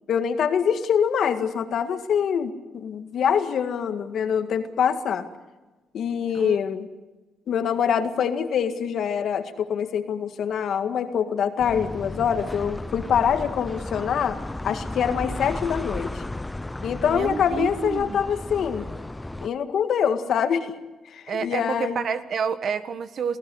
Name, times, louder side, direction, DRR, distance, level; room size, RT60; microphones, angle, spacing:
voice 1, 0.1-5.3 5.9-6.9 7.5-14.4 14.6-16.2 16.8-18.9 19.4-20.7 21.1-22.0, left 7 dB, 65° left, 8 dB, 1.9 m, -24 dB
sound 1, 11.6-19.5, left 2 dB, 10° left, 0.6 m, -34 dB
voice 2, 17.1-18.2 21.3-23.4, right 6 dB, 60° right, 11 dB, 1.5 m, -29 dB
27.0 x 16.0 x 7.9 m, 1.2 s
cardioid pair, 90°, 0 cm